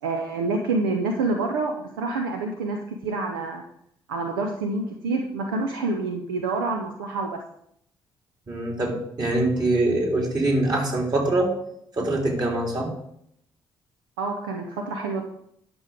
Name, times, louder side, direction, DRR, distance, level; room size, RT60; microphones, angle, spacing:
voice 1, 0.0-3.6 4.1-7.4 14.2-15.2, right 3 dB, 75° right, 3 dB, 0.8 m, -27 dB
voice 2, 8.5-11.5 12.0-12.9, right 2 dB, 35° right, 0 dB, 3.6 m, -23 dB
11.0 x 6.1 x 5.1 m, 0.73 s
figure-of-eight pair, 40°, 12 cm